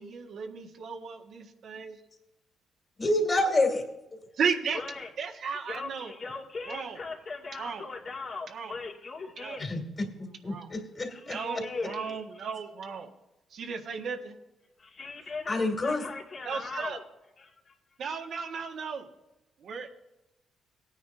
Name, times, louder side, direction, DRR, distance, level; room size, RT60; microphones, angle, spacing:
voice 1, 0.0-2.0 4.4-4.8 5.2-6.1 6.7-7.0 7.6-7.8 8.5-8.7 9.4-9.6 10.4-10.7 11.3-13.1 13.5-14.3 16.4-17.0 18.0-19.1 19.6-19.9, right 5 dB, 65° right, 2 dB, 1.6 m, -34 dB
voice 2, 3.0-3.8 9.6-9.8 10.2-11.4 15.5-16.0, left 2 dB, 30° left, 3 dB, 2.5 m, -27 dB
voice 3, 4.7-5.1 5.7-9.8 11.1-12.4 14.8-17.0 17.4-17.7, left 4 dB, 50° left, -1 dB, 2.2 m, -39 dB
18.0 x 9.7 x 2.7 m, 0.95 s
cardioid pair, 90°, 0 cm